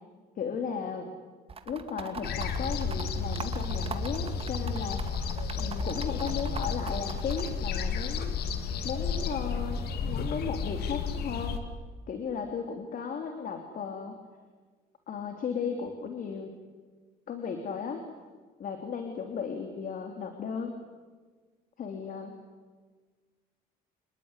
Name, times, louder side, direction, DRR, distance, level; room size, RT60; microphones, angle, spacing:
voice 1, 0.4-1.1 1.6-5.0 5.6-8.4 8.8-11.6 12.1-14.1 15.1-16.5 17.3-18.0 18.6-20.7 21.8-22.3, left 6 dB, 55° left, 5 dB, 3.4 m, -35 dB
sound 1, 1.5-7.5, right 6 dB, 35° right, 2.3 m, -41 dB
sound 2, 2.2-11.6, left 5 dB, 70° left, 2.9 m, -32 dB
28.0 x 20.5 x 10.0 m, 1.4 s
cardioid pair, 110°, 17 cm